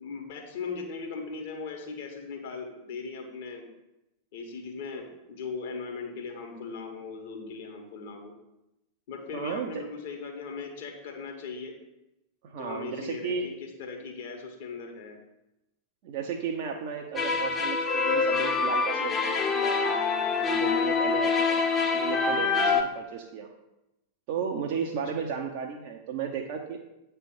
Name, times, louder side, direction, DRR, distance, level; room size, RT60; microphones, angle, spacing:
voice 1, 0.0-3.7 4.3-8.3 9.1-11.7 12.6-15.2 25.1-25.2, left 4 dB, 55° left, 2 dB, 1.4 m, -38 dB
voice 2, 9.3-9.8 12.4-13.5 16.0-19.9 20.4-21.6 21.9-23.6 24.3-26.8, right 6 dB, 45° right, 2 dB, 0.7 m, -34 dB
sound 1, 17.2-22.8, left 4 dB, 20° left, 0.8 m, -25 dB
8.2 x 3.4 x 6.1 m, 0.93 s
figure-of-eight pair, 90°, 0 cm